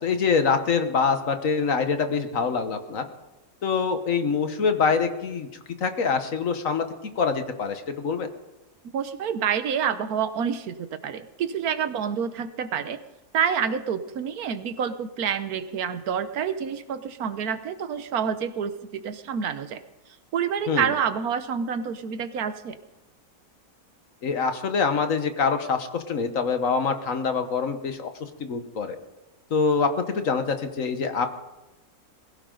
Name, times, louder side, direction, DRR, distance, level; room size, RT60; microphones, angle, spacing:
voice 1, 0.0-3.0 3.6-5.5 5.8-6.8 7.2-8.3 20.7-20.9 24.2-28.1 28.4-29.0 29.5-31.3, left 5 dB, 60° left, 8 dB, 1.6 m, -25 dB
voice 2, 8.9-13.0 13.3-19.8 20.3-22.8, right 7 dB, 75° right, 11 dB, 1.4 m, -28 dB
20.5 x 16.5 x 3.9 m, 1.0 s
omnidirectional pair, 1.6 m